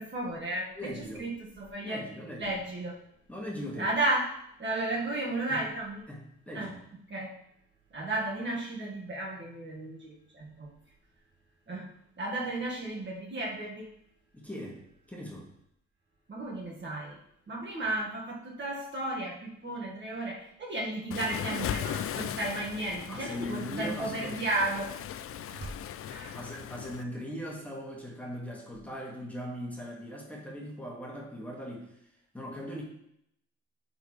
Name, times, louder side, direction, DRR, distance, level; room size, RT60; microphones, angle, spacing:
voice 1, 0.0-2.1 2.4-3.0 3.8-6.0 6.5-6.7 7.1-7.4 7.9-10.7 11.7-13.9 16.3-17.2 17.5-25.0 25.6-25.7 26.0-26.4, right 2 dB, 40° right, -3 dB, 1.7 m, -34 dB
voice 2, 0.8-1.3 1.8-2.6 3.3-4.0 5.5-5.7 6.1-6.8 14.3-14.8 15.1-15.5 23.0-24.4 25.3-25.8 26.3-32.0 32.3-32.8, equal, 5° left, -2 dB, 1.8 m, -40 dB
Waves surf, 21.1-27.0, left 10 dB, 50° left, 0.4 m, -38 dB
10.0 x 4.2 x 3.2 m, 0.75 s
cardioid pair, 90°, 30 cm